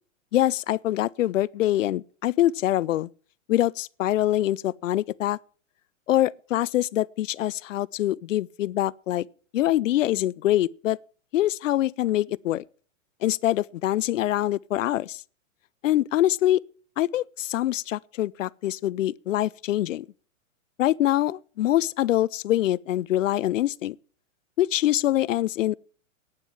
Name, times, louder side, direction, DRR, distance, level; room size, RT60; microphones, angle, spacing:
voice 1, 0.3-3.1 3.5-5.4 6.1-9.3 9.5-11.0 11.3-12.6 13.2-15.2 15.8-16.6 17.0-20.1 20.8-24.0 24.6-25.8, left 14 dB, 75° left, 0.6 m, -24 dB
11.0 x 9.0 x 7.2 m
hypercardioid pair, 145°, 39 cm